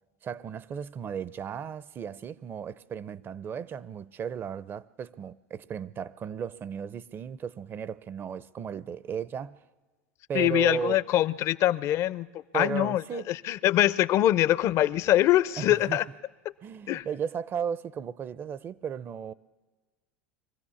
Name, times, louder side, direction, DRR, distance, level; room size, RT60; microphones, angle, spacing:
voice 1, 0.2-9.6 10.3-11.0 12.5-13.2 15.6-16.0 16.6-19.3, right 7 dB, 35° right, 0.6 m, -35 dB
voice 2, 10.3-12.3 12.5-16.0 16.9-17.1, left 13 dB, 50° left, 0.5 m, -24 dB
23.5 x 15.5 x 7.1 m
hypercardioid pair, 95°, 6 cm